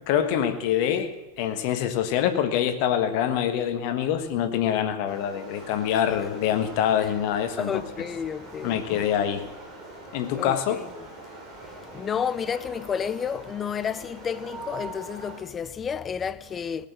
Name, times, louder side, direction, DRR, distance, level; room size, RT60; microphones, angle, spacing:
voice 1, 0.1-1.1 1.4-7.7 8.6-9.4 10.1-10.8, left 9 dB, 45° left, 1.4 m, -25 dB
sound 1, 5.1-15.4, right 2 dB, 20° right, 5.3 m, -43 dB
voice 2, 7.6-9.1 10.3-10.8 11.6-16.9, left 7 dB, 20° left, 0.5 m, -31 dB
18.0 x 7.4 x 7.7 m
figure-of-eight pair, 90°, 0 cm